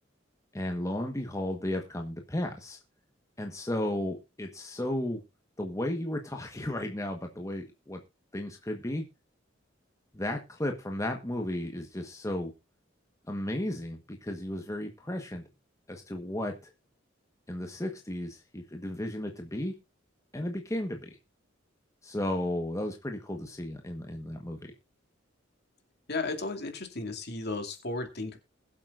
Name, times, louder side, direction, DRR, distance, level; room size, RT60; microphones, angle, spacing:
voice 1, 0.5-2.8 3.4-5.2 5.6-8.0 8.3-9.0 10.1-12.5 13.3-15.4 15.9-16.7 17.5-19.7 20.3-21.1 22.0-24.7, left 1 dB, 15° left, 4 dB, 1.3 m, -34 dB
voice 2, 26.1-28.4, left 3 dB, 55° left, 4 dB, 2.6 m, -34 dB
21.5 x 7.7 x 2.5 m, 0.26 s
head